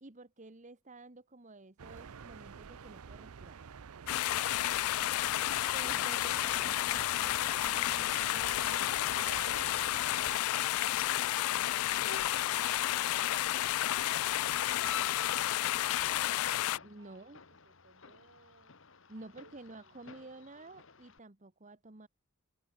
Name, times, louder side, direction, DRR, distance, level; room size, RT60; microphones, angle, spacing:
voice 1, 0.0-3.6 5.7-9.3 16.8-17.4 19.1-22.1, right 2 dB, 35° right, 1.4 m, -51 dB
sound 1, 1.8-10.4, right 6 dB, 90° right, 0.6 m, -48 dB
sound 2, 4.1-16.8, left 14 dB, 85° left, 0.3 m, -31 dB
voice 2, 10.8-16.6 17.0-18.8 19.1-20.8, right 2 dB, 55° right, 7.7 m, -65 dB
sound 3, 11.7-21.2, left 7 dB, 60° left, 1.9 m, -49 dB
head